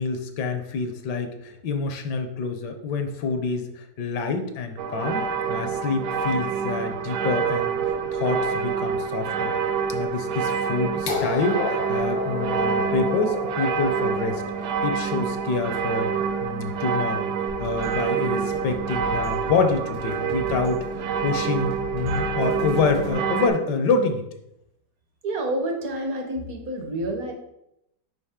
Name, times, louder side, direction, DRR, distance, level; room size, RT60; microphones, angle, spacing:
voice 1, 0.0-9.5 9.9-14.4 14.8-16.1 16.4-17.3 17.6-24.2, left 4 dB, 75° left, 7 dB, 1.3 m, -27 dB
sound 1, 4.8-23.5, right 6 dB, 75° right, 1.1 m, -27 dB
sound 2, 11.1-16.9 18.0-18.1, left 4 dB, 90° left, 1.5 m, -32 dB
sound 3, 17.5-23.1, right 1 dB, 90° right, 2.5 m, -39 dB
voice 2, 25.2-27.3, right 1 dB, 60° right, 3 dB, 1.4 m, -28 dB
5.6 x 4.9 x 3.6 m, 0.82 s
omnidirectional pair, 1.9 m